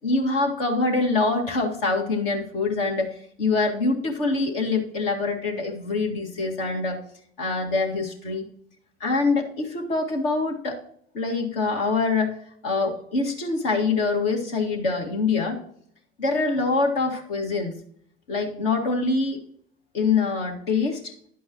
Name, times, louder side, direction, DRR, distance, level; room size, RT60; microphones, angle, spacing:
voice 1, 0.0-7.0 7.4-8.5 9.0-10.8 11.1-12.4 12.6-15.6 16.2-17.7 18.3-19.4 19.9-21.1, left 3 dB, 65° left, 2 dB, 2.0 m, -24 dB
11.0 x 8.4 x 3.0 m, 0.64 s
figure-of-eight pair, 60°, 30 cm